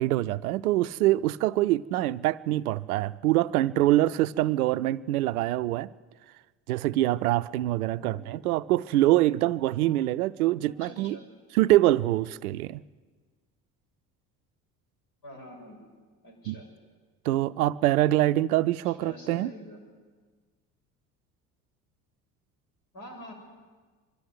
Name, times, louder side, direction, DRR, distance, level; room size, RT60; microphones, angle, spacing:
voice 1, 0.0-5.9 6.7-11.2 11.5-12.8 16.5-16.6 17.3-19.5, right 15 dB, 85° right, 0.6 m, -24 dB
voice 2, 7.9-8.3 10.8-11.3 15.2-15.8 16.2-16.7 18.8-19.8 22.9-23.3, equal, 50° left, 7.5 m, -45 dB
22.5 x 13.0 x 9.5 m
hypercardioid pair, 65°, 43 cm